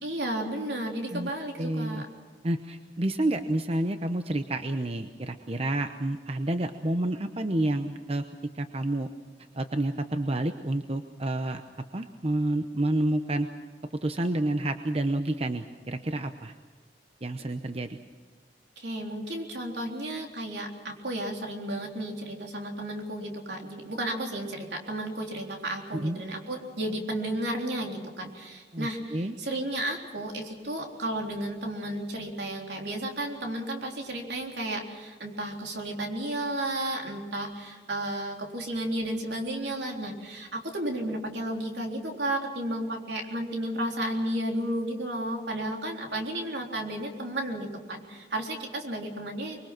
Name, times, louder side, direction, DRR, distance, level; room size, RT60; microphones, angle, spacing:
voice 1, 0.0-2.1 17.4-17.5 18.8-49.6, right 1 dB, 70° right, 1 dB, 3.7 m, -33 dB
voice 2, 1.6-2.0 2.4-8.2 8.5-9.1 9.5-11.6 11.9-13.5 14.0-16.5 17.2-18.0 25.9-26.2 28.7-29.3, right 1 dB, 35° right, 7 dB, 0.8 m, -29 dB
24.5 x 22.5 x 6.1 m, 1.5 s
head